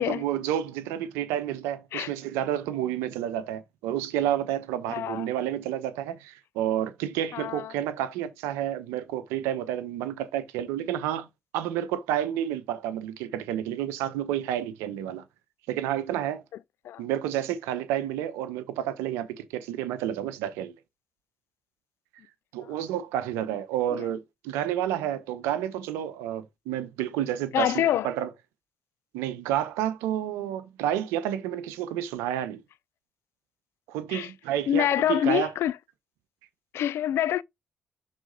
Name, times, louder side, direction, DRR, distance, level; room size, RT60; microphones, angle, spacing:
voice 1, 0.0-11.3 11.5-15.2 15.7-16.4 17.0-20.7 22.5-28.3 29.1-32.6 33.9-35.5, right 11 dB, 85° right, 0.8 m, -30 dB
voice 2, 4.9-5.2 7.3-7.7 16.9-17.0 23.9-24.0 27.5-28.1 34.1-34.3 34.7-35.7 36.7-37.4, left 11 dB, 75° left, 0.3 m, -26 dB
6.3 x 4.1 x 3.9 m
hypercardioid pair, 45°, 4 cm